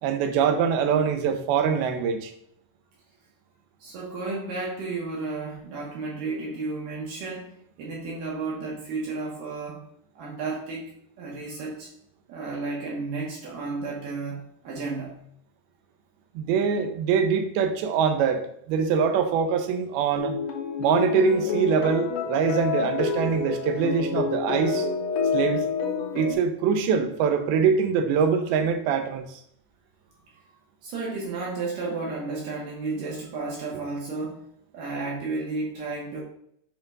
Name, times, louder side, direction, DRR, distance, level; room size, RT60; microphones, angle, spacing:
voice 1, 0.0-2.3 16.4-18.4 18.7-20.4 20.8-24.9 25.3-25.7 26.1-29.4, right 6 dB, 80° right, 7 dB, 2.4 m, -23 dB
voice 2, 3.8-9.8 10.2-10.9 11.2-11.9 12.3-15.2 23.2-23.5 30.8-34.4 34.7-36.2, right 3 dB, 65° right, -3 dB, 2.6 m, -32 dB
sound 1, 20.2-26.3, left 5 dB, 70° left, 2.1 m, -28 dB
8.8 x 5.5 x 2.4 m, 0.69 s
omnidirectional pair, 4.8 m